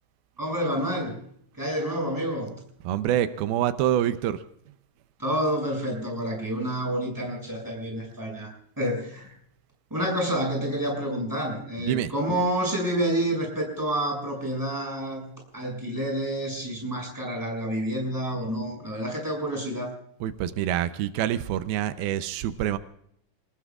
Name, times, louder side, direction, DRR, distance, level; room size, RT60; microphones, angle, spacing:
voice 1, 0.4-1.2 1.6-2.5 5.2-9.3 9.9-19.9, right 1 dB, 5° right, -1 dB, 6.5 m, -29 dB
voice 2, 2.9-4.4 11.9-12.1 20.2-22.8, right 11 dB, 90° right, 11 dB, 2.6 m, -26 dB
28.5 x 20.0 x 2.4 m, 0.70 s
omnidirectional pair, 4.2 m